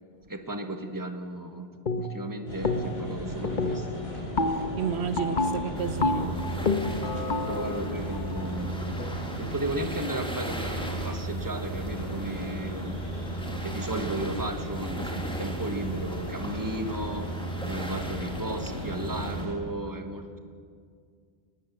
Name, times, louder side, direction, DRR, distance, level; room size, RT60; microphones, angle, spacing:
voice 1, 0.3-4.1 7.5-9.0 9.4-13.0 13.6-17.3 17.6-20.4, right 2 dB, 20° right, 1.4 m, -35 dB
sound 1, 1.9-2.3 2.6-3.1 3.4-9.3, left 3 dB, 50° left, 1.3 m, -30 dB
sound 2, 2.5-19.5, equal, 65° left, 4.6 m, -36 dB
voice 2, 4.5-7.5, right 7 dB, 80° right, 1.3 m, -34 dB
sound 3, 5.7-19.5, right 2 dB, 5° left, 2.0 m, -37 dB
21.5 x 19.5 x 7.2 m
omnidirectional pair, 1.1 m